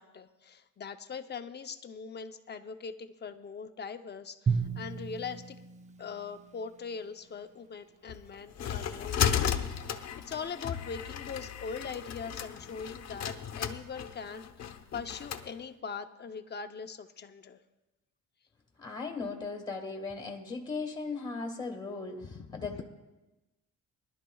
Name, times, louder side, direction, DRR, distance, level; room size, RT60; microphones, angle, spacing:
voice 1, 0.0-5.6 6.0-17.6 22.2-22.8, left 5 dB, 35° left, 8 dB, 0.7 m, -41 dB
Drum, 4.5-6.8, right 5 dB, 25° right, 0.5 m, -34 dB
sound 1, 8.1-15.5, left 8 dB, 55° left, 1.0 m, -34 dB
voice 2, 18.8-22.8, left 4 dB, 15° left, 1 dB, 1.7 m, -37 dB
22.5 x 12.0 x 2.3 m, 1.0 s
cardioid pair, 135°, 32 cm